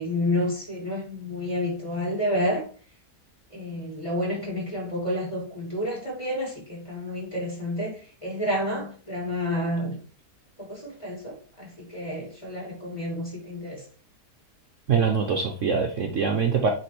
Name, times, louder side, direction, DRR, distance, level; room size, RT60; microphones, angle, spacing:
voice 1, 0.0-2.6 3.5-10.0 10.6-13.8, left 1 dB, 15° left, 3.5 m, -30 dB
voice 2, 14.9-16.7, right 6 dB, 55° right, 1.0 m, -23 dB
8.3 x 3.4 x 4.5 m
omnidirectional pair, 1.8 m